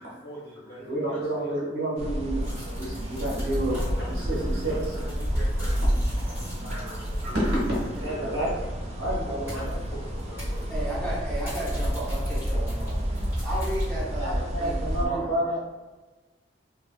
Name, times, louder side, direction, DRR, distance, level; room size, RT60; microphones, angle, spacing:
voice 1, 0.0-1.5 3.6-5.8 6.3-7.3 7.9-11.5, equal, 55° left, -7 dB, 1.3 m, -43 dB
voice 2, 0.8-3.8 4.1-4.8 5.6-5.7 6.7-7.0 7.2-9.8 14.2-15.6, right 1 dB, 75° right, -6 dB, 1.1 m, -30 dB
sound 1, 2.0-15.1, equal, 35° right, 0.3 m, -29 dB
sound 2, 2.4-8.1 8.4-8.5 9.5-9.9 10.2-10.8 11.4-13.9, equal, 10° right, 1.3 m, -46 dB
voice 3, 10.7-15.3, right 1 dB, 5° left, -7 dB, 0.7 m, -34 dB
2.9 x 2.5 x 2.3 m, 1.2 s
head